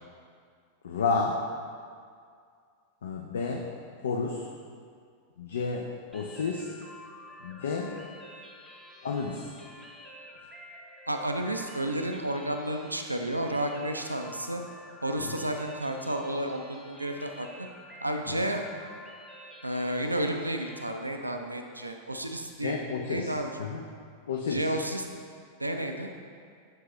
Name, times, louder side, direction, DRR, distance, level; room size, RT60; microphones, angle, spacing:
voice 1, 0.8-1.4 3.0-3.7 4.0-4.4 5.4-5.9 6.1-6.7 7.4-7.9 9.0-9.5 15.2-15.4 18.3-18.4 22.6-23.9 24.3-24.7, left 4 dB, 65° left, 0 dB, 0.4 m, -31 dB
sound 1, 6.1-20.9, left 1 dB, ahead, 0.8 m, -49 dB
voice 2, 11.1-14.6 15.0-17.5 18.0-18.6 19.6-22.8 23.1-23.5 24.5-25.0 25.6-26.1, right 1 dB, 85° right, 4 dB, 0.4 m, -31 dB
6.7 x 4.6 x 3.0 m, 2.2 s
figure-of-eight pair, 90°, 0 cm